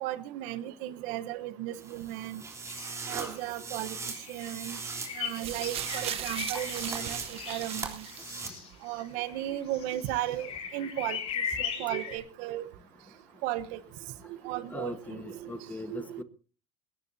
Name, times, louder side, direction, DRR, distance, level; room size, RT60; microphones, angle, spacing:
voice 1, 0.0-2.4 3.1-4.0 4.3-4.8 5.2-8.0 8.8-11.2 11.6-12.7 13.4-13.8 14.3-15.5 15.9-16.2, right 14 dB, 70° right, 14 dB, 1.1 m, -35 dB
sound 1, 1.7-8.5, right 4 dB, 20° right, 3.5 m, -40 dB
sound 2, 2.7-3.8 4.1-12.2, left 7 dB, 50° left, 6.0 m, -39 dB
sound 3, 5.3-8.6 9.5-9.6, right 12 dB, 45° right, 1.0 m, -39 dB
voice 2, 14.7-16.2, left 3 dB, 10° left, 12 dB, 1.2 m, -40 dB
20.0 x 17.5 x 2.7 m, 0.37 s
supercardioid pair, 130°, 14 cm